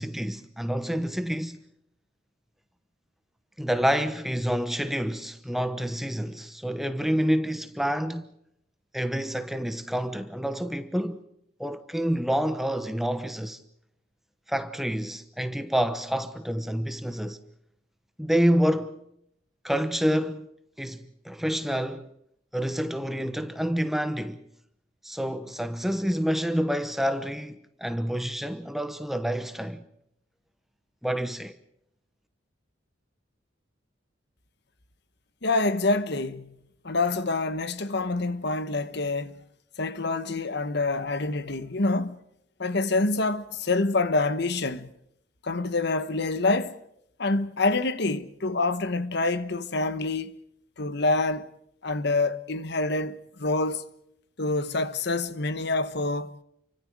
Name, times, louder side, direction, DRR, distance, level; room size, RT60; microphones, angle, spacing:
voice 1, 0.0-1.6 3.6-8.3 8.9-11.2 11.6-13.6 14.5-17.4 18.2-19.0 19.6-20.5 20.8-22.1 22.5-24.4 25.0-29.8 31.0-31.6, equal, ahead, 1.1 m, -28 dB
voice 2, 35.4-36.6 36.8-39.4 39.8-42.2 42.6-44.9 45.4-46.8 47.2-50.3 50.8-51.5 51.8-53.8 54.4-56.3, left 3 dB, 60° left, 1.2 m, -26 dB
30.0 x 24.5 x 4.8 m
head